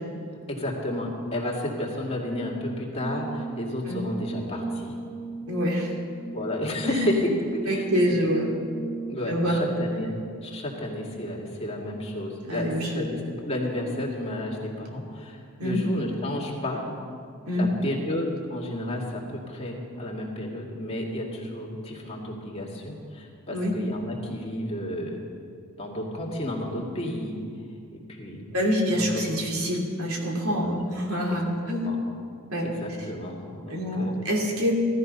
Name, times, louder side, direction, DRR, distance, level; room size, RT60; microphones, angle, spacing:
voice 1, 0.5-4.9 6.3-8.2 9.1-10.1 10.4-16.8 17.6-25.2 25.8-27.4 27.9-28.4 29.0-29.1 30.5-30.8 31.8-32.0 32.8-34.2, left 1 dB, 30° left, -2 dB, 2.4 m, -32 dB
Brass instrument, 3.0-9.4, right 3 dB, 20° right, 0.9 m, -37 dB
voice 2, 5.5-5.9 6.8-7.0 7.6-8.5 9.3-9.7 12.5-13.1 15.6-15.8 17.5-17.7 23.5-23.8 28.5-31.9 32.5-32.7 33.7-34.7, equal, 80° right, 0 dB, 2.7 m, -26 dB
16.5 x 13.5 x 5.5 m, 2.3 s
head